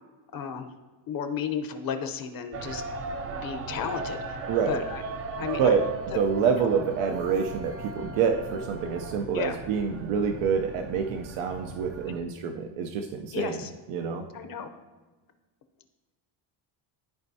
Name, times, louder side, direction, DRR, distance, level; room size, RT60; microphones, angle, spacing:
voice 1, 0.3-0.7 1.1-4.4 4.7-5.0 5.4-5.8 6.1-6.2 6.6-6.7 9.3-9.6 13.3-13.7 14.3-14.7, left 7 dB, 45° left, 7 dB, 0.7 m, -33 dB
sound 1, 2.5-12.2, right 4 dB, 30° right, 0.4 m, -37 dB
voice 2, 4.5-4.8 5.6-5.8 6.1-13.6 13.9-14.2, right 6 dB, 85° right, 4 dB, 0.7 m, -27 dB
13.0 x 4.3 x 2.7 m, 1.3 s
cardioid pair, 135°, 49 cm